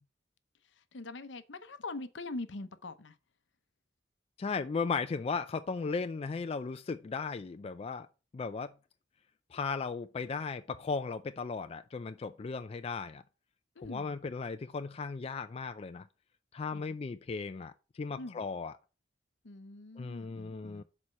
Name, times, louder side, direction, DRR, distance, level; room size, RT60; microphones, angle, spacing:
voice 1, 0.6-3.2 13.7-14.2 16.7-17.0 18.2-18.5 19.4-20.8, left 2 dB, 70° left, 0.7 m, -43 dB
voice 2, 4.4-8.1 8.3-8.7 9.5-13.2 13.8-16.0 16.5-18.7 20.0-20.8, left 4 dB, 30° left, 0.3 m, -36 dB
6.3 x 4.3 x 6.4 m
head